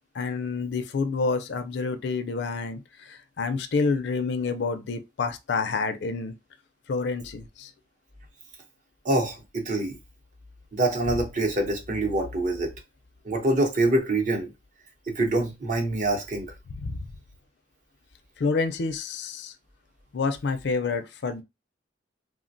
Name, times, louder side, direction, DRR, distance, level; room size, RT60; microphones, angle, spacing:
voice 1, 0.1-6.3 6.9-7.7 16.8-17.0 18.4-19.5 20.1-21.4, left 4 dB, 65° left, 0.4 m, -28 dB
voice 2, 9.0-10.0 10.7-12.7 13.2-14.5 15.1-16.5, right 2 dB, 45° right, 0.7 m, -25 dB
3.3 x 2.1 x 2.5 m
head